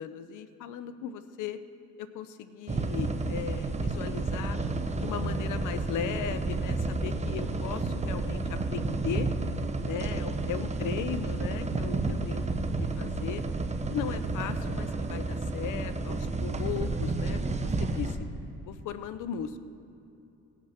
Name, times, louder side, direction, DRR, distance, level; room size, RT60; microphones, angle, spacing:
voice 1, 0.0-1.6 2.0-4.6 5.0-9.3 9.8-12.4 12.8-13.4 13.9-18.2 18.6-19.6, left 9 dB, 85° left, 12 dB, 0.7 m, -37 dB
sound 1, 2.7-18.2, right 3 dB, 25° right, 0.9 m, -31 dB
17.5 x 6.0 x 5.7 m, 2.7 s
cardioid pair, 90°, 30 cm